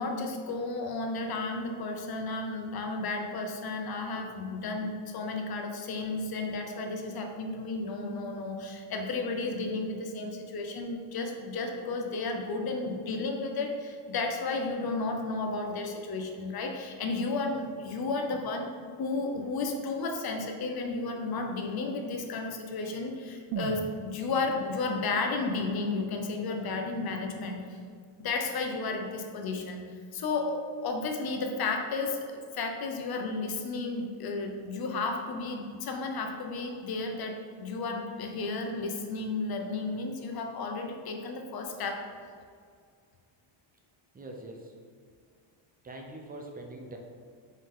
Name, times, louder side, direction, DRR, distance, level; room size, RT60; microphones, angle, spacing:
voice 1, 0.0-18.7 19.0-27.8 28.2-42.0, left 3 dB, 50° left, 3 dB, 0.8 m, -33 dB
sound 1, 23.5-27.5 27.8-27.9, right 7 dB, 85° right, 0.6 m, -42 dB
voice 2, 44.1-44.7 45.8-47.0, right 1 dB, 20° right, 1 dB, 0.6 m, -43 dB
5.5 x 4.9 x 3.7 m, 2.1 s
cardioid pair, 165°, 48 cm